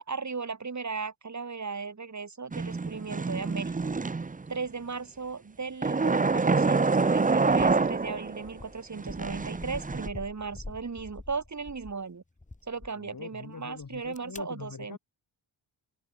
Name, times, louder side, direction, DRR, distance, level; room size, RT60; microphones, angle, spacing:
voice 1, 0.0-3.9 4.5-12.2 12.7-15.0, right 4 dB, 35° right, 2.8 m, -36 dB
sound 1, 2.5-4.6 5.8-8.5 9.0-10.1, right 4 dB, 20° right, 0.6 m, -26 dB
sound 2, 7.0-7.1 7.5-12.0 12.4-12.9 13.8-14.4, left 2 dB, 15° left, 2.3 m, -45 dB
voice 2, 12.9-15.0, left 5 dB, 45° left, 3.9 m, -43 dB
open air
wide cardioid pair, 155°, 47 cm